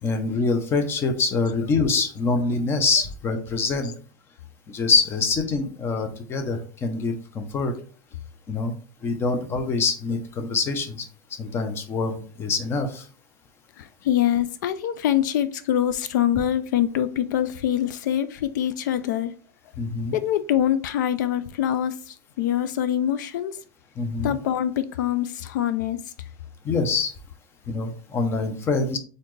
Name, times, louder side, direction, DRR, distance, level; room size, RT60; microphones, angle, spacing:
voice 1, 0.0-3.9 4.7-7.7 8.5-8.7 9.0-11.1 11.4-13.1 19.8-20.2 24.0-24.4 26.6-27.1 27.7-29.0, left 4 dB, 25° left, 7 dB, 0.7 m, -25 dB
voice 2, 13.8-19.3 20.1-23.6 24.2-26.0, left 11 dB, 85° left, 12 dB, 0.4 m, -24 dB
4.1 x 3.8 x 3.2 m, 0.42 s
supercardioid pair, 145°, 10 cm